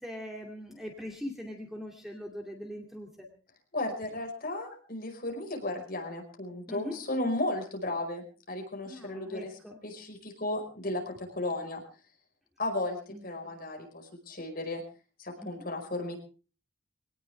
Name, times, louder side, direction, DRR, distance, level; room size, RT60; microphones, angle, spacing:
voice 1, 0.0-3.3 6.7-7.0 8.8-9.8 13.1-13.6 15.4-15.7, left 1 dB, ahead, 1 dB, 2.5 m, -41 dB
voice 2, 3.7-11.0 11.3-11.8 12.6-13.0 13.2-14.8 15.2-16.2, left 2 dB, 45° left, 2 dB, 5.0 m, -34 dB
22.5 x 18.5 x 3.5 m, 0.37 s
head